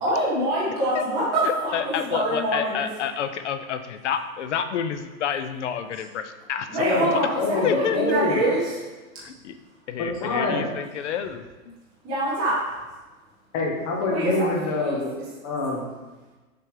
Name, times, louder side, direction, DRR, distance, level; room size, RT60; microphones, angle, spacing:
voice 1, 0.0-2.9 6.7-8.8 12.0-12.6 14.1-14.5 14.8-14.9, right 1 dB, 10° right, -8 dB, 0.6 m, -25 dB
voice 2, 1.4-7.0 7.6-8.0 9.2-9.5 9.9-11.4, left 8 dB, 55° left, 9 dB, 0.6 m, -29 dB
voice 3, 7.4-8.5 10.0-10.7 13.5-15.1 15.4-15.8, left 2 dB, 25° left, -2 dB, 0.8 m, -25 dB
6.7 x 3.5 x 4.7 m, 1.2 s
hypercardioid pair, 170°, 42 cm